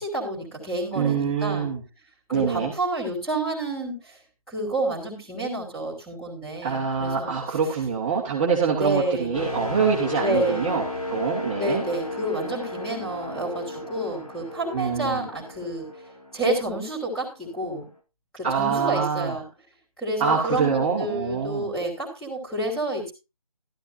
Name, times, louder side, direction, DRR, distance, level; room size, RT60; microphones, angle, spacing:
voice 1, 0.0-1.7 2.3-4.2 4.5-7.3 8.8-9.4 10.2-10.8 11.5-15.9 16.3-17.9 18.3-19.4 20.0-23.1, right 2 dB, 5° left, -4 dB, 3.1 m, -29 dB
voice 2, 0.9-1.8 2.3-2.7 6.6-11.8 14.7-15.3 18.4-19.3 20.2-21.7, right 6 dB, 15° right, -4 dB, 1.5 m, -25 dB
sound 1, 9.3-17.2 17.6-17.9, left 2 dB, 85° left, 8.0 m, -34 dB
13.0 x 12.5 x 2.7 m, 0.28 s
figure-of-eight pair, 165°, 19 cm